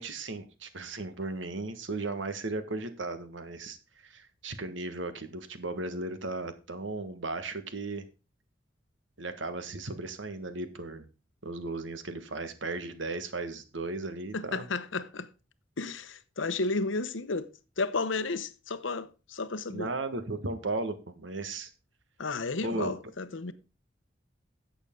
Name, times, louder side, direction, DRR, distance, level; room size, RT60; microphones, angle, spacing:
voice 1, 0.0-8.0 9.2-11.0 11.4-14.6 19.7-21.7 22.6-22.9, right 2 dB, 85° right, 1.6 m, -36 dB
voice 2, 14.3-15.3 15.8-17.5 17.8-19.9 22.2-23.5, left 3 dB, 90° left, 0.9 m, -32 dB
11.5 x 8.2 x 3.8 m
head